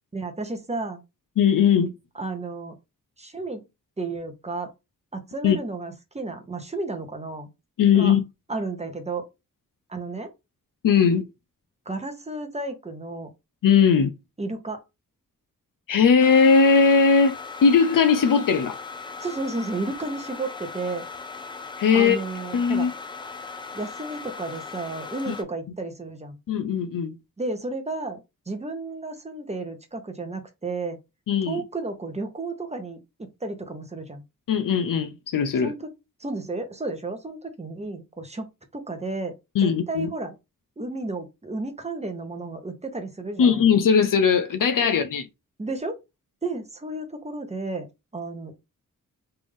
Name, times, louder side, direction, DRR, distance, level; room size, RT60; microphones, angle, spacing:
voice 1, 0.1-1.0 2.2-2.8 3.2-3.6 4.0-4.7 5.1-7.5 7.9-8.1 8.5-9.2 9.9-10.3 11.9-13.3 14.4-14.8 19.2-21.0 21.9-22.9 23.7-26.4 27.4-31.0 31.5-34.2 35.6-35.9 36.2-38.5 38.7-39.3 39.6-40.3 40.8-43.6 45.6-46.0 46.4-47.9 48.1-48.6, right 3 dB, 20° right, 0.9 m, -32 dB
voice 2, 1.4-1.9 5.4-5.6 7.8-8.2 10.8-11.3 13.6-14.1 15.9-17.4 17.6-18.8 21.8-22.2 22.5-22.9 25.3-25.4 26.5-27.2 31.3-31.6 34.5-35.7 39.5-40.1 43.4-45.3, left 6 dB, 70° left, 0.6 m, -19 dB
sound 1, 16.2-25.4, left 5 dB, 15° left, 0.5 m, -38 dB
3.3 x 2.6 x 3.5 m
wide cardioid pair, 100°, 33 cm